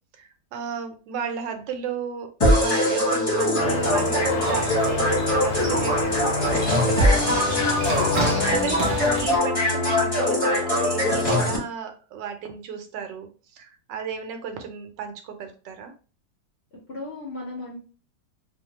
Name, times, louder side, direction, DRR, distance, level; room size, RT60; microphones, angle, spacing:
voice 1, 0.2-15.9, right 6 dB, 90° right, 6 dB, 1.3 m, -34 dB
sound 1, 2.4-11.6, left 1 dB, 30° left, 0.7 m, -22 dB
sound 2, 3.6-8.6, left 4 dB, 80° left, 1.3 m, -30 dB
sound 3, 3.8-9.4, right 2 dB, 60° right, 0.5 m, -33 dB
voice 2, 8.2-8.9 16.9-17.9, left 3 dB, 55° left, -3 dB, 0.7 m, -35 dB
3.0 x 2.1 x 2.8 m, 0.37 s
omnidirectional pair, 1.9 m